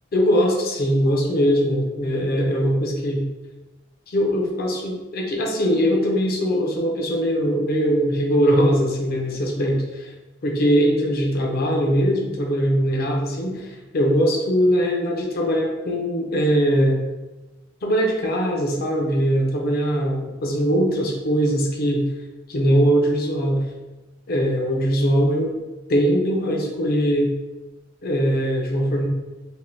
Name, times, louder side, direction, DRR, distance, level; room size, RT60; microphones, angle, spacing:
voice 1, 0.1-3.2 4.1-10.1 10.4-17.0 17.8-22.0 22.5-23.6 24.3-25.6 25.9-27.3 28.0-29.1, equal, 50° left, 0 dB, 0.5 m, -21 dB
3.4 x 2.5 x 2.6 m, 1.1 s
head